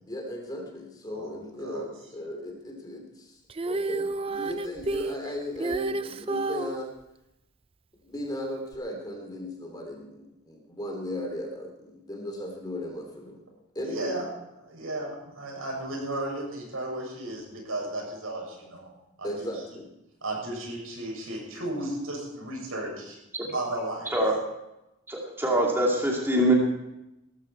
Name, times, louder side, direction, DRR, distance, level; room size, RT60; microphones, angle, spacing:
voice 1, 0.1-6.9 8.0-13.4 13.7-14.2 19.2-19.9, left 1 dB, 20° left, 2 dB, 2.9 m, -36 dB
Female singing, 3.5-6.8 8.7-8.8, right 3 dB, 25° right, 0.5 m, -30 dB
voice 2, 13.8-14.3 14.6-18.9 19.2-19.5 20.2-23.2 23.5-24.2, right 1 dB, 85° right, -1 dB, 7.1 m, -34 dB
voice 3, 25.1-26.5, right 1 dB, 10° right, -2 dB, 2.5 m, -24 dB
18.5 x 14.0 x 4.5 m, 0.89 s
head